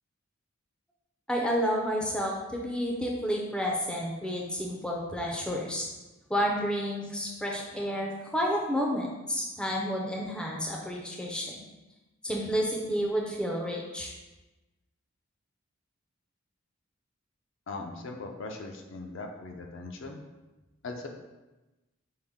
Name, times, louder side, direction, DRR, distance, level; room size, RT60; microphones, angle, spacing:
voice 1, 1.3-5.9 6.3-11.6 12.2-14.1, equal, 5° left, -2 dB, 0.4 m, -30 dB
voice 2, 17.7-20.2 20.8-21.1, left 3 dB, 60° left, 2 dB, 0.5 m, -39 dB
5.5 x 2.1 x 3.5 m, 1.1 s
head